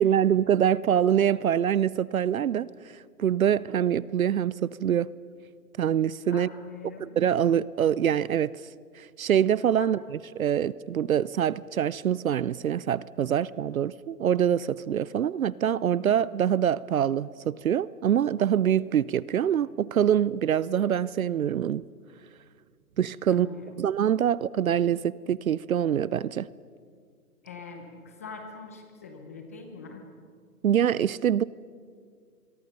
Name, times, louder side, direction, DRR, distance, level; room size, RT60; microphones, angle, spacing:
voice 1, 0.0-2.7 3.2-5.1 5.8-6.5 7.0-8.5 9.0-21.8 23.0-23.5 23.8-26.5 30.6-31.4, right 9 dB, 60° right, 21 dB, 0.6 m, -25 dB
voice 2, 6.3-7.1 9.8-9.9 23.3-23.8 27.4-30.0, left 5 dB, 10° left, 4 dB, 0.7 m, -43 dB
25.5 x 23.0 x 5.4 m, 2.1 s
hypercardioid pair, 160°, 47 cm